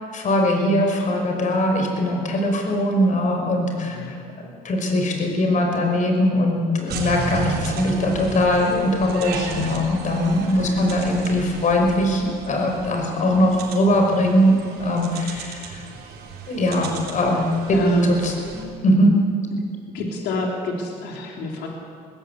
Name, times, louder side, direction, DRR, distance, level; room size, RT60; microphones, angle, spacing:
voice 1, 0.1-4.0 4.4-15.8 16.5-17.8 18.1-19.2, left 1 dB, 50° left, 2 dB, 5.5 m, -21 dB
voice 2, 3.8-4.3 10.6-11.0 17.3-17.4 17.7-18.2 19.9-21.7, right 1 dB, 85° left, 0 dB, 3.7 m, -27 dB
sound 1, 6.9-18.6, right 4 dB, 70° right, 3.9 m, -34 dB
21.0 x 16.5 x 8.4 m, 2.3 s
cardioid pair, 110°, 17 cm